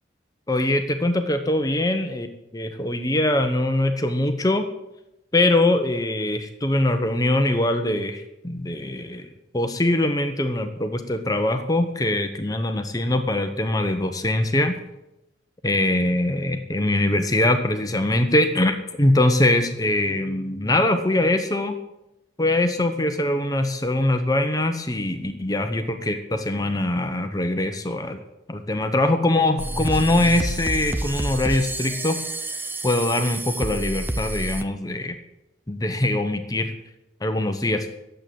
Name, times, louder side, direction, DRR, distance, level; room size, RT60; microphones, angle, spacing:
voice 1, 0.5-2.3 2.5-4.7 5.3-14.8 15.6-21.8 22.4-28.2 28.5-32.2 32.8-35.2 35.7-36.7 37.2-37.9, left 1 dB, 20° left, 6 dB, 0.9 m, -22 dB
sound 1, 29.6-34.6, right 1 dB, 10° right, 0.5 m, -29 dB
11.5 x 7.8 x 8.5 m, 0.90 s
head